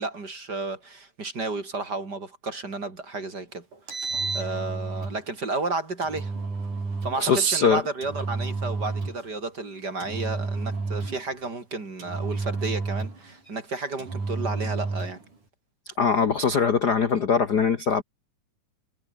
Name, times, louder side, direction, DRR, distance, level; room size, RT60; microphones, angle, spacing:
voice 1, 0.0-4.0 4.3-6.3 7.0-15.2, right 3 dB, 35° right, 3.9 m, -32 dB
Engine, 3.7-5.2 6.0-7.2 8.0-9.3 10.0-11.3 12.0-13.3 14.0-15.2, right 3 dB, 90° right, 9.4 m, -31 dB
voice 2, 7.2-7.8 16.0-18.0, left 5 dB, 45° left, 1.5 m, -22 dB
omnidirectional pair, 3.4 m